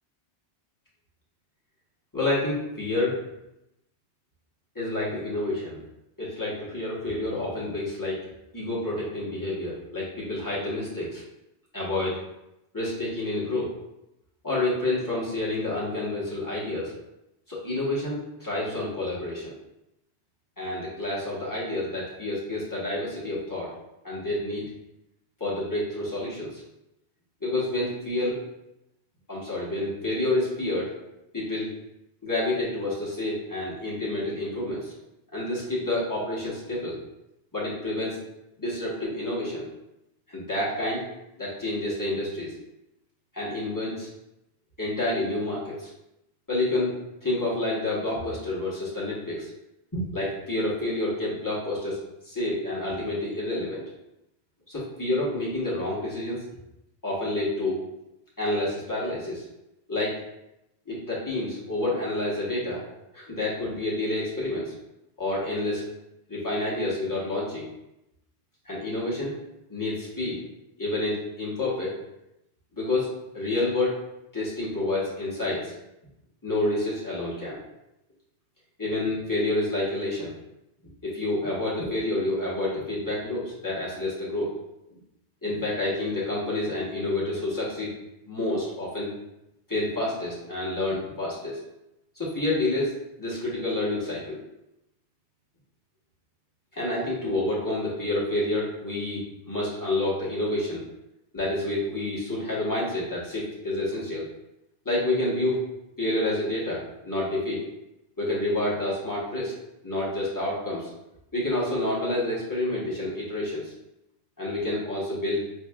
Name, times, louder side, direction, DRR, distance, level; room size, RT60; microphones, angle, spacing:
voice 1, 2.1-3.2 4.7-5.8 6.2-8.2 8.5-11.2 11.7-12.2 12.7-13.7 14.4-16.9 17.5-19.5 20.6-23.7 24.0-24.7 25.4-26.6 27.4-28.4 29.3-30.9 31.3-31.7 32.2-34.9 35.3-37.0 37.5-38.2 38.6-39.6 40.3-41.0 41.4-42.5 43.3-44.1 44.8-45.9 46.5-47.0 47.2-49.5 49.9-52.0 52.2-53.8 54.7-56.4 57.0-57.8 58.4-59.4 59.9-60.2 60.9-62.8 63.1-64.7 65.2-65.9 66.3-67.7 68.6-69.4 69.7-70.4 70.8-72.0 72.7-74.0 74.3-75.7 76.4-77.6 78.8-80.3 81.0-84.5 85.4-87.9 88.3-89.1 89.7-91.6 92.2-94.4 96.7-100.8 101.3-104.3 104.8-105.6 106.0-107.7 108.2-109.5 109.8-110.9 111.3-113.7 114.4-115.4, left 2 dB, 20° left, -7 dB, 1.0 m, -28 dB
4.6 x 2.7 x 2.3 m, 0.89 s
omnidirectional pair, 1.2 m